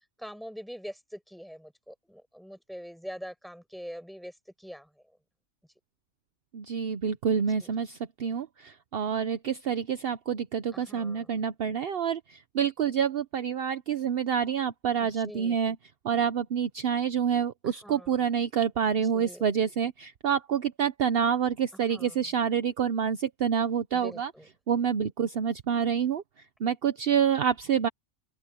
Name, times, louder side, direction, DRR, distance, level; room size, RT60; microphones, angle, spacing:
voice 1, 0.2-4.3 4.6-4.9 7.6-7.7 10.7-11.4 15.1-15.6 17.6-18.2 19.1-19.5 21.9-22.2 23.9-24.5, equal, ahead, 6.5 m, -44 dB
voice 2, 6.5-15.8 16.0-24.3 24.7-26.2 26.6-27.9, right 8 dB, 60° right, 1.0 m, -27 dB
open air
omnidirectional pair, 1.2 m